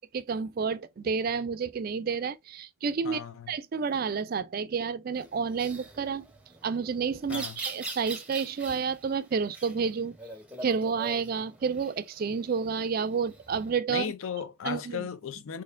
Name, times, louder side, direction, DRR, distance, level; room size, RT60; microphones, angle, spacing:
voice 1, 0.1-3.2 3.5-6.3 6.6-10.2 10.6-14.1 14.6-15.1, right 5 dB, 45° right, 0.3 m, -30 dB
voice 2, 3.0-3.5 7.3-7.6 13.9-15.6, left 7 dB, 75° left, 0.4 m, -36 dB
sound 1, 5.1-13.7, right 2 dB, 5° right, 0.7 m, -44 dB
4.2 x 2.8 x 2.5 m
head